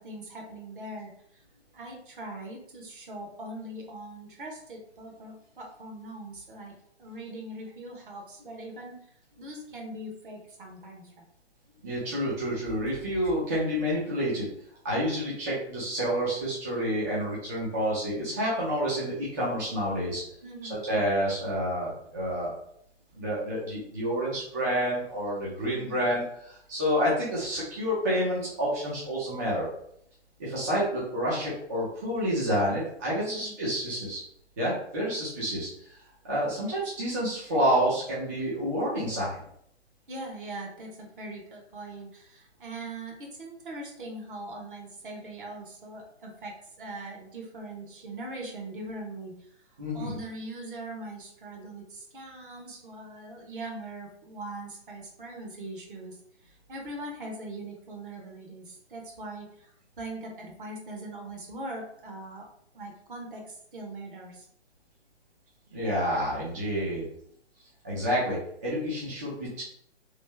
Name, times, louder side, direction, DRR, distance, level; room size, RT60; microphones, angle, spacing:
voice 1, 0.0-1.4 1.7-6.7 7.0-9.1 9.4-11.2 20.4-20.9 33.2-33.6 35.4-35.5 40.1-49.5 49.9-62.5 62.7-64.5, right 2 dB, 50° right, 0 dB, 1.1 m, -41 dB
voice 2, 11.8-14.5 14.8-20.2 20.8-22.5 23.1-29.7 30.4-34.2 34.6-39.5 49.8-50.2 65.7-67.0 67.8-69.6, equal, 15° right, -8 dB, 0.5 m, -29 dB
3.2 x 2.6 x 3.3 m, 0.69 s
figure-of-eight pair, 140°, 34 cm